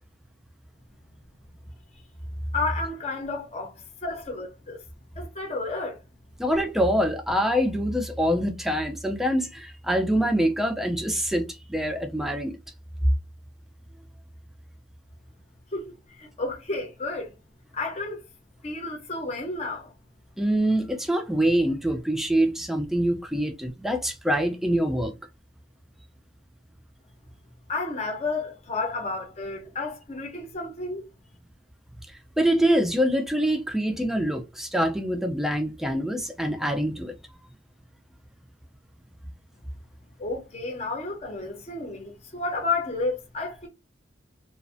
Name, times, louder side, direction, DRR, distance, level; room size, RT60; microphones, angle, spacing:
voice 1, 2.5-4.8 5.2-6.0 15.7-17.3 17.7-18.2 18.6-19.9 27.7-31.0 40.2-43.7, left 3 dB, 35° left, 0.6 m, -31 dB
voice 2, 6.4-12.6 20.4-25.1 32.4-37.2, equal, ahead, 0.3 m, -25 dB
2.4 x 2.1 x 2.4 m
head